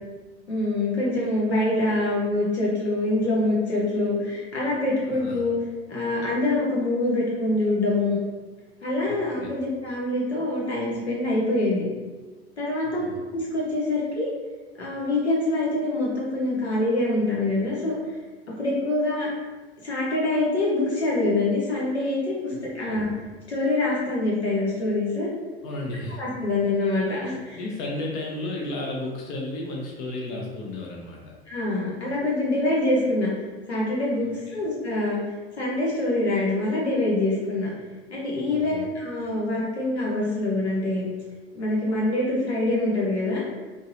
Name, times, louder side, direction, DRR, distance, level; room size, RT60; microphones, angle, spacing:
voice 1, 0.5-5.6 5.9-8.2 8.8-11.9 12.6-13.0 13.3-14.3 14.8-17.9 18.6-19.3 19.8-23.1 23.5-25.3 26.2-27.6 31.5-33.3 33.7-35.2 35.6-37.7 38.1-41.1 41.5-43.4, left 2 dB, 80° left, -5 dB, 1.1 m, -25 dB
voice 2, 5.1-5.4 9.1-9.5 13.0-13.2 22.5-23.0 25.6-26.2 27.5-31.3 34.5-34.6 38.5-38.9, left 2 dB, 45° left, -1 dB, 0.7 m, -34 dB
3.7 x 2.8 x 2.8 m, 1.3 s
figure-of-eight pair, 80°, 32 cm